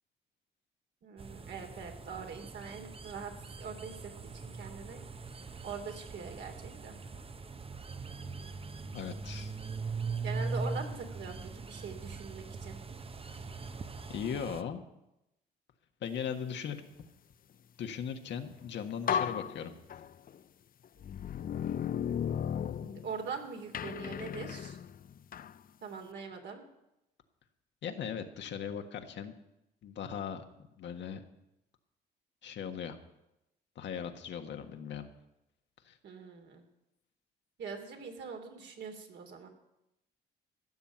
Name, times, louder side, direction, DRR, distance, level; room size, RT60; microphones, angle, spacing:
voice 1, 1.0-3.3 3.6-4.1 4.4-5.0 5.6-7.0 10.2-12.8 22.8-24.8 25.8-26.6 36.0-36.6 37.6-39.5, right 5 dB, 65° right, 4 dB, 3.0 m, -42 dB
sound 1, 1.2-14.6, right 4 dB, 30° right, 1.0 m, -41 dB
voice 2, 8.9-9.5 14.1-14.8 16.0-16.8 17.8-19.7 27.8-29.3 29.8-30.4 30.8-31.2 32.4-33.0 33.7-35.1 35.8-35.9, left 8 dB, 70° left, 6 dB, 1.6 m, -38 dB
sound 2, 18.5-18.6 19.1-20.4 21.0-23.3 23.7-25.6, left 8 dB, 50° left, 0.6 m, -35 dB
15.0 x 7.1 x 9.1 m, 0.89 s
supercardioid pair, 60°, 19 cm